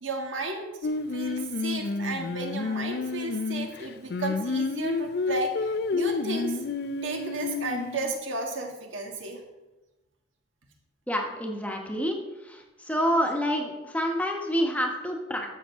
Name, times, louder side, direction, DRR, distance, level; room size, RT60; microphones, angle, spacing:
voice 1, 0.0-0.7 1.1-6.6 7.0-9.4, right 2 dB, 85° right, 2 dB, 1.7 m, -33 dB
Singing, 0.8-8.1, left 4 dB, 55° left, 0.4 m, -30 dB
voice 2, 11.1-12.2 12.4-15.5, equal, 5° left, 1 dB, 1.0 m, -28 dB
12.5 x 7.3 x 3.6 m, 1.1 s
head